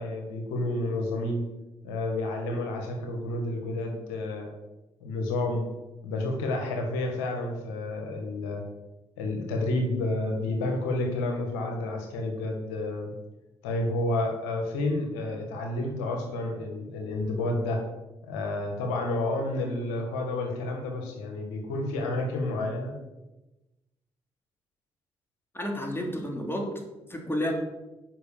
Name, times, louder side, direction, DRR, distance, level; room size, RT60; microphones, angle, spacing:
voice 1, 0.0-1.4 1.8-4.5 5.0-5.7 6.0-8.6 9.2-13.1 13.6-17.8 18.2-22.9, left 2 dB, 85° left, 2 dB, 1.8 m, -30 dB
voice 2, 25.5-26.8 27.1-27.5, equal, 15° left, 2 dB, 2.9 m, -31 dB
8.1 x 5.9 x 6.8 m, 1.0 s
hypercardioid pair, 40°, 13 cm